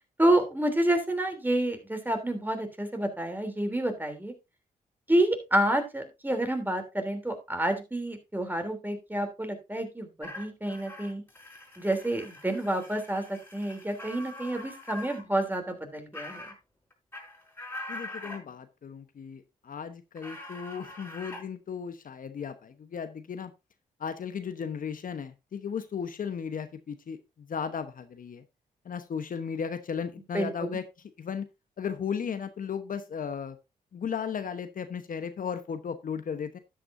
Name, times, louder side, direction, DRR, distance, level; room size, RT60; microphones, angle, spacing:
voice 1, 0.2-4.3 5.1-11.2 11.8-16.4 30.3-30.8, right 1 dB, 10° right, 6 dB, 3.2 m, -29 dB
sound 1, 10.2-15.2 15.5-15.6 16.1-16.5 16.9-18.4 20.2-21.4, left 1 dB, 15° left, 4.4 m, -43 dB
voice 2, 17.9-23.5 24.0-28.4 28.8-31.5 31.8-33.6 33.9-36.6, left 7 dB, 60° left, 10 dB, 1.0 m, -35 dB
12.5 x 8.6 x 2.6 m, 0.25 s
supercardioid pair, 55°, 16 cm